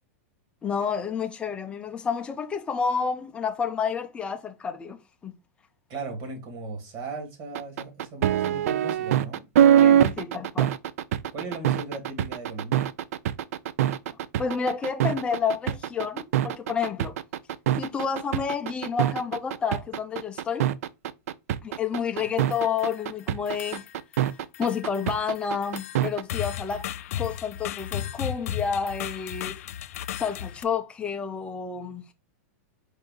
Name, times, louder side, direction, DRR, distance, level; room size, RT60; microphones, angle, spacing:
voice 1, 0.6-5.3 9.8-10.7 14.4-17.2 17.8-20.7 21.6-23.8 24.6-29.6 30.2-32.0, left 6 dB, 15° left, 0.5 m, -30 dB
voice 2, 5.9-9.4 11.3-12.9, right 3 dB, 40° right, 2.0 m, -37 dB
sound 1, 7.5-26.2, right 10 dB, 75° right, 0.4 m, -23 dB
sound 2, 22.2-23.0 23.5-24.3 24.5-30.6, left 11 dB, 70° left, 0.4 m, -35 dB
4.7 x 2.6 x 3.7 m
supercardioid pair, 145°, 8 cm